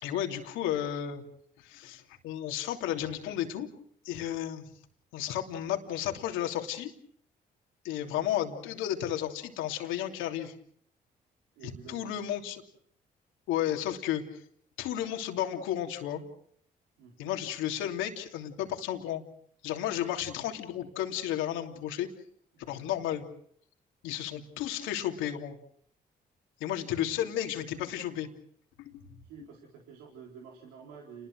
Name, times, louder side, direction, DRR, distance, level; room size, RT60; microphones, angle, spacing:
voice 1, 0.0-1.2 1.6-3.7 4.0-4.7 5.1-6.9 7.8-10.5 11.9-12.6 13.5-14.4 14.8-16.2 17.2-19.2 19.6-22.1 22.7-23.2 24.0-25.6 26.6-28.3 28.8-29.0, left 11 dB, 80° left, 4 dB, 3.1 m, -33 dB
voice 2, 8.0-8.3 11.6-12.2 17.0-17.4 22.5-23.0 29.2-31.3, right 6 dB, 85° right, 0 dB, 4.0 m, -50 dB
30.0 x 21.5 x 6.4 m, 0.65 s
hypercardioid pair, 55°, 20 cm